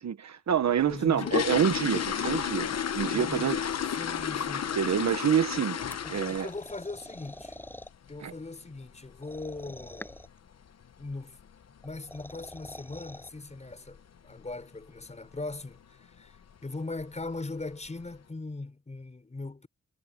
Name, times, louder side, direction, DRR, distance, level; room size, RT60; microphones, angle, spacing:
voice 1, 0.0-2.7 2.9-3.6 4.8-5.8 6.1-6.5 8.2-8.3, right 8 dB, 65° right, 1.1 m, -27 dB
sound 1, 0.8-6.7 7.0-7.3 7.6-7.7 8.1-8.2 8.6-8.8 9.1-9.2 9.8-9.9 10.1-10.3 10.8-11.1 11.4-11.5 11.9-12.1 12.4-12.5 12.9-13.0 13.7-14.0 14.3-14.6 15.0-15.1 15.5-15.6 16.4-16.5 16.9-17.4 17.9-18.0, left 8 dB, 60° left, 1.0 m, -32 dB
voice 2, 0.8-1.4 3.1-4.8 6.0-7.6 8.1-10.2 11.0-11.4 11.8-19.7, left 3 dB, 25° left, 5.4 m, -40 dB
sound 2, 5.9-7.9 9.2-10.4 11.8-13.3, left 1 dB, 5° left, 6.2 m, -46 dB
wide cardioid pair, 160°, 30 cm